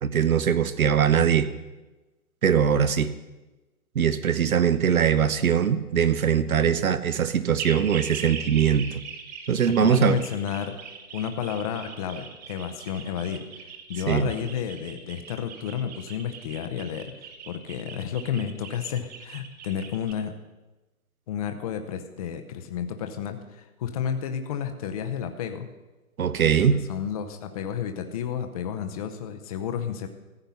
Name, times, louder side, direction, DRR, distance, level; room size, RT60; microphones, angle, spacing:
voice 1, 0.0-1.5 2.4-3.1 3.9-9.0 9.5-10.2 14.1-14.3 26.2-26.8, right 8 dB, 70° right, 13 dB, 1.0 m, -21 dB
sound 1, 7.6-20.1, right 6 dB, 30° right, 1.2 m, -41 dB
voice 2, 9.8-10.7 11.1-13.4 13.9-17.1 17.5-20.3 21.3-25.7 26.6-30.1, left 8 dB, 25° left, 6 dB, 0.7 m, -31 dB
15.0 x 7.9 x 5.7 m, 1.1 s
hypercardioid pair, 145°, 44 cm